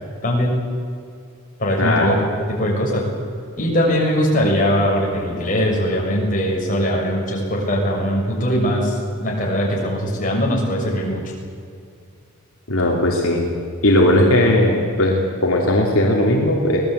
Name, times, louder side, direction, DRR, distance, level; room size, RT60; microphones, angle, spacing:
voice 1, 0.2-0.5 1.6-2.2 2.5-3.1 3.6-11.3, equal, 40° left, -2 dB, 6.4 m, -20 dB
voice 2, 1.8-2.1 12.7-13.4 13.8-16.8, left 1 dB, 70° left, -2 dB, 3.2 m, -17 dB
24.0 x 18.5 x 8.3 m, 2.3 s
head